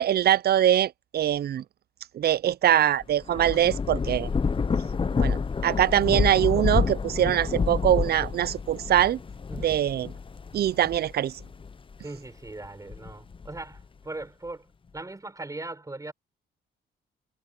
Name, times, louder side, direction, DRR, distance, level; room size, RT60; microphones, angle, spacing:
voice 1, 0.0-1.6 2.1-4.3 5.2-5.4 5.6-9.2 9.6-10.1 10.5-11.4, right 11 dB, 55° right, 0.5 m, -23 dB
Thunder / Rain, 3.0-11.9 12.5-13.8, left 5 dB, 25° left, 0.7 m, -29 dB
voice 2, 9.5-9.8 12.0-14.7 14.9-16.1, right 2 dB, 15° right, 5.7 m, -39 dB
cardioid pair, 90°, 20 cm